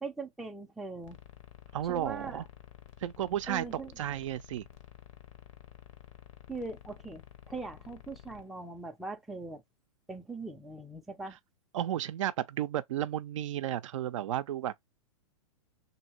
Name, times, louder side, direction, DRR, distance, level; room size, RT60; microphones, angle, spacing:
voice 1, 0.0-1.2 1.9-2.4 3.5-3.9 6.5-9.6 10.1-11.4, right 3 dB, ahead, 0.4 m, -41 dB
sound 1, 1.0-8.4, left 10 dB, 60° left, 0.8 m, -52 dB
voice 2, 1.7-2.4 3.0-4.6 11.7-14.7, right 11 dB, 60° right, 0.5 m, -33 dB
2.7 x 2.7 x 3.0 m
hypercardioid pair, 120°, 18 cm